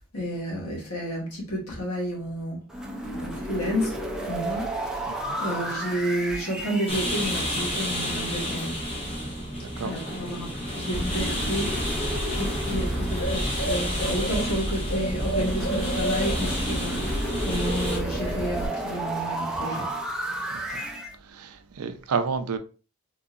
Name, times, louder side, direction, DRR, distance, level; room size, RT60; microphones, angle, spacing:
voice 1, 0.1-5.0 5.4-8.9 9.8-11.9 12.4-19.9, equal, 85° left, 1.6 m, -31 dB
sound 1, 2.7-7.8 10.9-14.7 15.4-21.1, right 1 dB, 5° right, 0.4 m, -33 dB
sound 2, 6.9-18.0, equal, 25° left, 1.0 m, -31 dB
voice 2, 9.6-9.9 20.7-20.9 21.2-22.6, right 5 dB, 80° right, 0.5 m, -30 dB
Bird, 10.9-18.7, equal, 65° left, 1.6 m, -30 dB
3.9 x 2.7 x 2.4 m
head